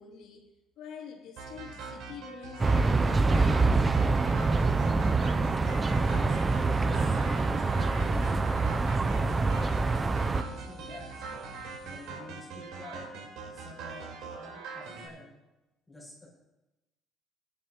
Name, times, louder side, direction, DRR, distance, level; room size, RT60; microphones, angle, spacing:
voice 1, 0.0-4.0 4.7-4.9, left 7 dB, 65° left, 2.7 m, -47 dB
sound 1, 1.4-15.1, right 4 dB, 85° right, 3.7 m, -42 dB
sound 2, 2.6-10.4, right 3 dB, 15° right, 0.3 m, -25 dB
sound 3, 5.6-12.1, right 1 dB, 35° right, 2.8 m, -55 dB
voice 2, 6.1-7.5 7.9-8.3 8.8-9.4 9.8-11.2 11.8-13.1 13.5-14.0 14.4-15.3 15.9-16.3, left 1 dB, 5° left, 5.6 m, -48 dB
20.0 x 10.5 x 2.9 m
cardioid pair, 180°, 0 cm